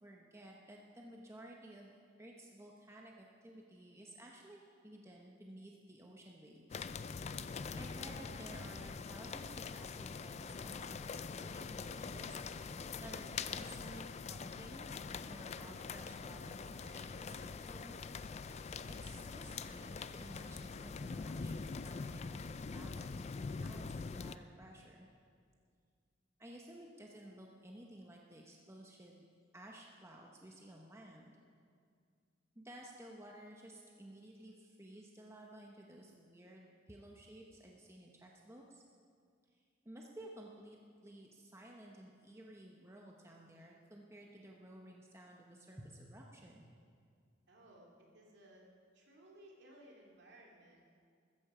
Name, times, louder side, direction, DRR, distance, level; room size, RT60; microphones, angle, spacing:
voice 1, 0.0-15.0 15.2-18.0 18.9-25.1 26.4-29.2 29.5-31.3 32.5-38.8 39.5-46.8, right 1 dB, 15° right, -1 dB, 1.0 m, -55 dB
sound 1, 6.7-24.4, left 5 dB, 35° left, 0.4 m, -44 dB
voice 2, 47.5-48.7 48.9-50.9, right 1 dB, 60° right, -2 dB, 2.7 m, -60 dB
15.0 x 14.0 x 5.0 m, 2.2 s
head